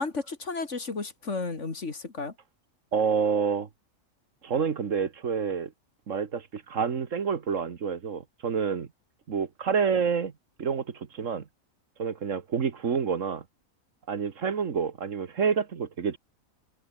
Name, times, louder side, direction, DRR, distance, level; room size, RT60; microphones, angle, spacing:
voice 1, 0.0-2.3, left 3 dB, 60° left, 2.8 m, -33 dB
voice 2, 2.9-3.7 4.4-5.7 6.1-8.9 9.3-10.3 10.6-11.4 12.0-13.4 14.1-16.2, right 6 dB, 65° right, 1.7 m, -28 dB
omnidirectional pair, 1.4 m